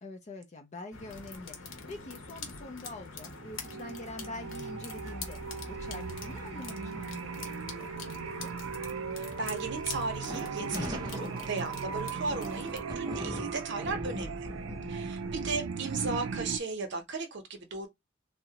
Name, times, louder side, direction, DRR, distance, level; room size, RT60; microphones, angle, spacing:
voice 1, 0.0-8.5 14.7-15.0, left 2 dB, 35° left, 0.4 m, -45 dB
sound 1, 0.9-12.8, left 3 dB, 80° left, 0.9 m, -44 dB
sound 2, 3.3-16.6, right 5 dB, 85° right, 0.4 m, -38 dB
voice 2, 9.2-14.5 14.9-17.9, right 4 dB, 65° right, 0.8 m, -36 dB
sound 3, 10.2-16.5, equal, 20° right, 0.7 m, -41 dB
3.6 x 2.1 x 2.8 m
head